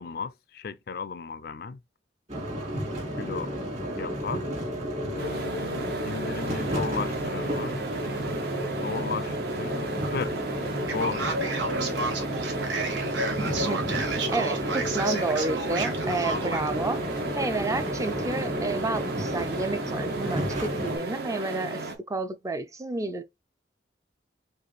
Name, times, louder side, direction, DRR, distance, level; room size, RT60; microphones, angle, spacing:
voice 1, 0.0-1.8 3.1-3.5 4.0-4.5 5.1-7.8 8.8-10.4 10.9-11.5, left 5 dB, 55° left, 0.4 m, -35 dB
sound 1, 2.3-21.0, equal, 35° right, 1.9 m, -32 dB
sound 2, 5.2-21.9, right 1 dB, 60° right, 0.8 m, -34 dB
Male speech man speaking, 10.9-16.7, right 4 dB, 90° right, 1.3 m, -32 dB
voice 2, 13.4-23.2, right 3 dB, 15° right, 0.4 m, -31 dB
4.9 x 2.5 x 3.1 m
head